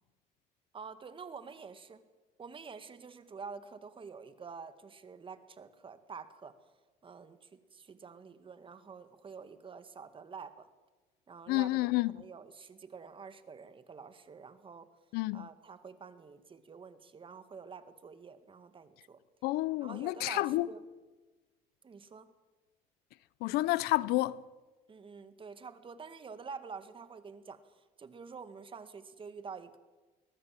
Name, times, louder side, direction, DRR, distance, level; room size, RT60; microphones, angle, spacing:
voice 1, 0.7-2.0 2.4-6.6 7.0-10.7 11.3-14.9 15.3-19.2 19.8-20.8 21.8-22.3 24.9-29.8, right 5 dB, 35° right, 2.1 m, -48 dB
voice 2, 11.5-12.2 15.1-15.5 19.4-20.7 23.4-24.4, left 18 dB, 80° left, 0.7 m, -30 dB
22.0 x 19.5 x 7.7 m
cardioid pair, 95°, 16 cm